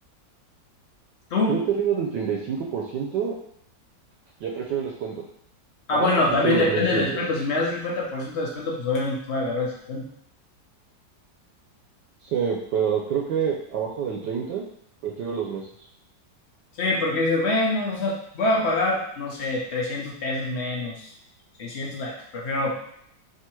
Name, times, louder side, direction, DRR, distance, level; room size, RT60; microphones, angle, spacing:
voice 1, 1.5-3.3 4.4-5.2 5.9-6.1 6.4-7.2 12.3-14.6 15.0-15.6, right 7 dB, 75° right, 0 dB, 1.2 m, -27 dB
voice 2, 5.9-10.0 16.8-21.1 21.6-22.8, left 2 dB, 55° left, -2 dB, 0.7 m, -25 dB
3.7 x 2.9 x 4.4 m, 0.70 s
omnidirectional pair, 2.0 m